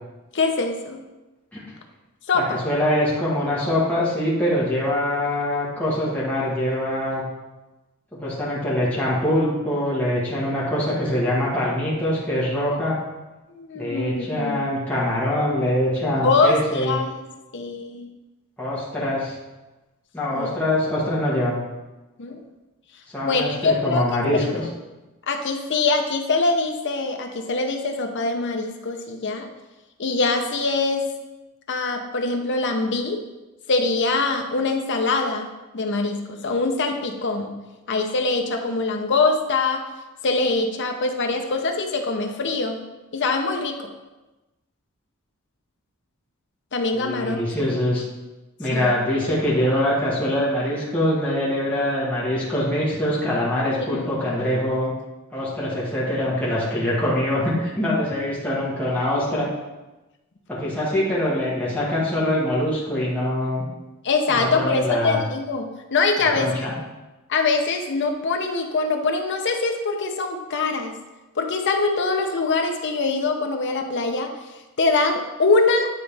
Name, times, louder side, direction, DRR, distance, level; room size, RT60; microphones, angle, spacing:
voice 1, 0.3-1.0 2.3-2.6 13.5-14.6 16.2-17.1 17.5-18.1 20.3-20.5 22.2-22.4 23.2-24.0 24.3-24.5 25.3-29.5 30.0-31.1 31.7-33.2 33.7-37.6 37.9-39.8 40.2-42.8 43.1-43.9 46.7-47.4 48.7-48.9 53.8-54.1 64.0-66.7 67.3-71.0 71.4-74.3 74.8-75.9, left 3 dB, 55° left, 4 dB, 0.7 m, -23 dB
voice 2, 2.3-7.2 8.2-12.9 13.7-17.0 18.6-19.4 20.1-21.6 23.1-24.6 47.0-48.0 48.6-54.9 55.3-59.5 60.5-63.6 64.3-65.2 66.2-66.8, left 1 dB, 5° left, -8 dB, 1.5 m, -23 dB
9.1 x 4.0 x 3.4 m, 1.1 s
head